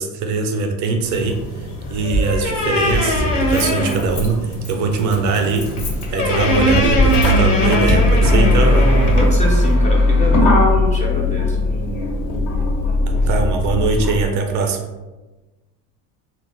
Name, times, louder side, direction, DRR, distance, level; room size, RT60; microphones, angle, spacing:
voice 1, 0.0-5.7 6.1-8.9 13.1-14.8, right 4 dB, 45° right, 4 dB, 0.4 m, -21 dB
sound 1, 1.0-9.7, left 1 dB, 50° left, 0.8 m, -22 dB
Motor vehicle (road), 1.9-2.0 3.1-14.2, left 1 dB, 65° left, 1.1 m, -18 dB
voice 2, 9.1-10.6 10.9-11.6, left 1 dB, 20° left, -3 dB, 0.3 m, -25 dB
2.2 x 2.0 x 3.6 m, 1.2 s
supercardioid pair, 100°, 40 cm